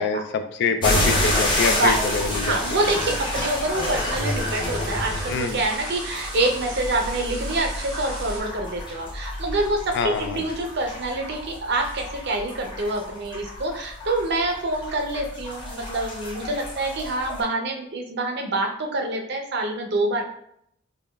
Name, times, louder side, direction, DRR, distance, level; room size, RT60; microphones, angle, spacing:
voice 1, 0.0-2.8 5.3-5.6 9.9-10.4, left 4 dB, 55° left, 8 dB, 0.3 m, -25 dB
sound 1, 0.8-17.4, left 1 dB, 20° left, 0.9 m, -29 dB
sound 2, 1.3-8.4, right 2 dB, 90° right, 1.0 m, -39 dB
voice 2, 2.4-20.2, right 2 dB, 55° right, 3 dB, 0.6 m, -26 dB
5.0 x 2.3 x 2.2 m, 0.71 s
head